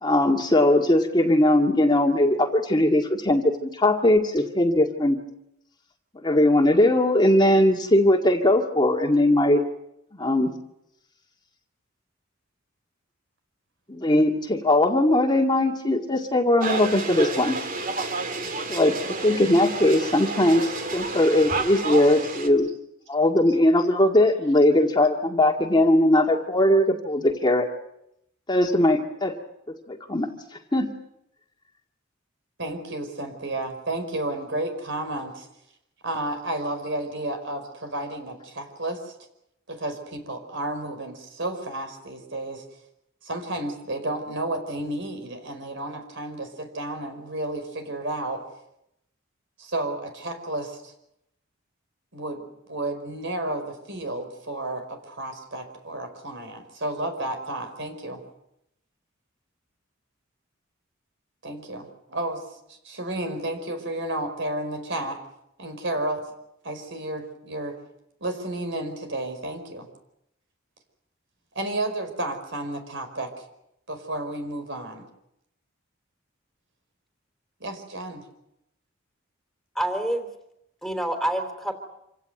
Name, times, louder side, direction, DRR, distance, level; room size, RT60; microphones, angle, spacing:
voice 1, 0.0-5.2 6.2-9.6 10.2-10.5 13.9-17.6 18.7-18.9 19.2-22.7 23.1-27.7 28.5-29.4 29.9-30.3 30.7-30.9, left 1 dB, 20° left, 3 dB, 2.0 m, -20 dB
sound 1, 16.6-22.5, right 3 dB, 45° right, 2.3 m, -30 dB
voice 2, 32.6-35.5 36.0-39.1 39.7-42.6 43.2-48.4 49.6-50.9 52.1-58.2 61.4-65.2 65.6-66.2 66.6-67.8 68.2-69.9 71.5-73.3 73.9-75.1 77.6-78.3, right 1 dB, 60° right, 6 dB, 5.0 m, -32 dB
voice 3, 79.7-80.3 80.8-81.7, right 1 dB, ahead, 5 dB, 3.4 m, -27 dB
27.0 x 17.0 x 9.4 m, 0.82 s
head